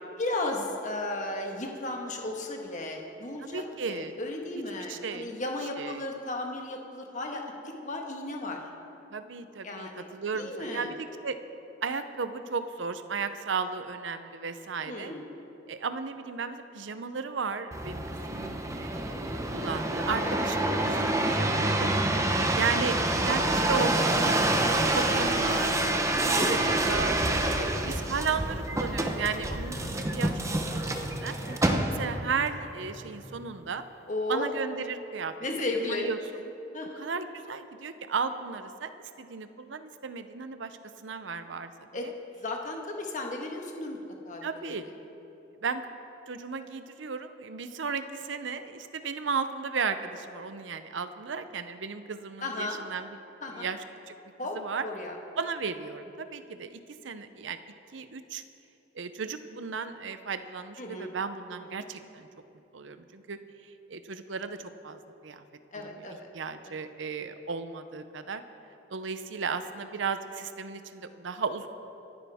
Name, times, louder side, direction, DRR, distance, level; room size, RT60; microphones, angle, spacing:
voice 1, 0.2-8.6 9.6-10.1 10.3-10.9 14.8-15.3 20.2-20.3 26.3-26.9 31.5-31.8 34.1-34.5 35.4-36.1 36.7-37.1 41.9-44.9 52.4-52.8 53.4-53.7 54.4-55.2 60.8-61.1 61.6-61.8 65.7-66.3 66.6-66.7, left 2 dB, 40° left, 2 dB, 1.5 m, -35 dB
voice 2, 3.4-4.1 4.9-5.4 5.8-6.0 9.1-11.3 11.8-15.1 15.7-21.9 22.3-25.7 26.2-27.2 27.6-31.4 32.0-33.8 34.3-35.3 35.8-36.2 37.0-38.9 39.2-42.1 44.4-44.9 45.6-45.8 46.3-53.1 53.5-53.8 54.1-54.2 54.5-54.8 55.4-57.6 57.9-58.4 58.9-62.3 62.7-63.4 63.9-65.4 66.0-66.1 66.3-68.4 68.9-71.7, right 5 dB, 75° right, 10 dB, 0.7 m, -35 dB
sound 1, 17.7-32.3 32.8-33.4, right 1 dB, 15° right, 0.9 m, -27 dB
26.0 x 10.0 x 3.6 m, 2.9 s
head